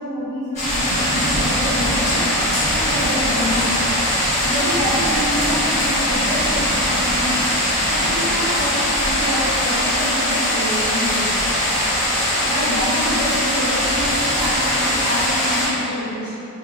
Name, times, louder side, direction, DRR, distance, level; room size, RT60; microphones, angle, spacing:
voice 1, 0.0-2.1 2.6-4.0 4.4-7.3 7.8-11.3 12.4-16.3, equal, 15° right, -15 dB, 1.4 m, -27 dB
sound 1, 0.5-15.7, equal, 30° left, 1.4 m, -20 dB
4.0 x 2.7 x 2.6 m, 2.9 s
head